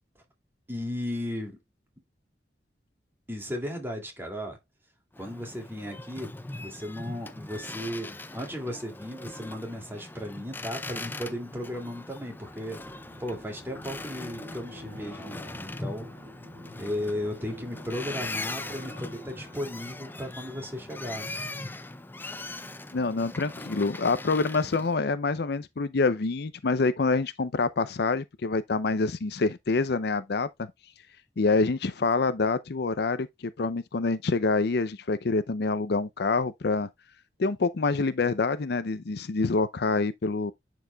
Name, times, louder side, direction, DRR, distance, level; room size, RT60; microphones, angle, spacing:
voice 1, 0.7-1.6 3.3-4.6 5.2-6.3 6.6-12.8 13.2-16.1 16.8-21.3, left 1 dB, 15° right, 2.4 m, -35 dB
Boat Water vehicle, 5.1-25.0, left 2 dB, 10° left, 0.5 m, -40 dB
sound 1, 12.3-21.7 22.0-22.3, equal, 50° right, 1.6 m, -49 dB
voice 2, 22.9-30.7 31.4-33.3 33.6-36.9 37.4-40.5, left 3 dB, 65° left, 0.6 m, -26 dB
10.5 x 4.7 x 2.3 m
head